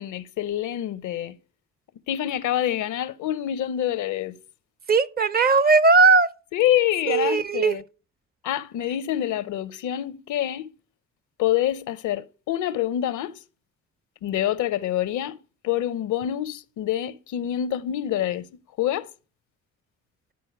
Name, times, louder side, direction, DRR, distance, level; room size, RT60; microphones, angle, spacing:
voice 1, 0.0-1.4 2.1-4.4 6.5-7.8 8.4-10.7 11.4-13.4 14.2-15.4 15.6-18.5 18.8-19.1, left 12 dB, 75° left, 0.7 m, -26 dB
voice 2, 4.9-6.3 7.1-7.8, right 4 dB, 30° right, 0.6 m, -18 dB
11.5 x 4.4 x 4.5 m
cardioid pair, 90°, 30 cm